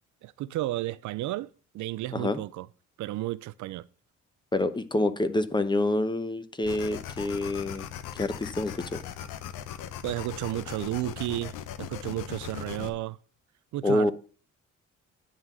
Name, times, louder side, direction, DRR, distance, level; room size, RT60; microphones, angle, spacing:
voice 1, 0.2-2.7 3.0-3.9 10.0-13.2 13.7-14.1, right 16 dB, 75° right, 0.5 m, -33 dB
voice 2, 4.5-7.9 8.2-9.0 13.8-14.1, left 1 dB, 15° left, 0.9 m, -27 dB
sound 1, 6.7-12.9, left 9 dB, 90° left, 0.8 m, -39 dB
9.6 x 3.8 x 7.3 m
cardioid pair, 90°, 30 cm